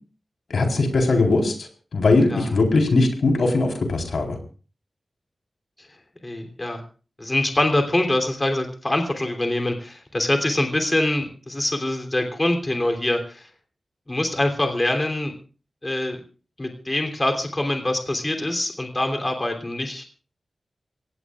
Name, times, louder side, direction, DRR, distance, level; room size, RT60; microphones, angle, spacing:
voice 1, 0.5-1.5 1.9-4.4, left 3 dB, 90° left, 2 dB, 4.1 m, -20 dB
voice 2, 6.2-6.8 7.2-13.5 14.1-15.3 15.8-16.2 16.6-20.0, left 1 dB, 25° left, 3 dB, 3.2 m, -24 dB
26.0 x 17.5 x 2.5 m, 0.38 s
wide cardioid pair, 110°, 0 cm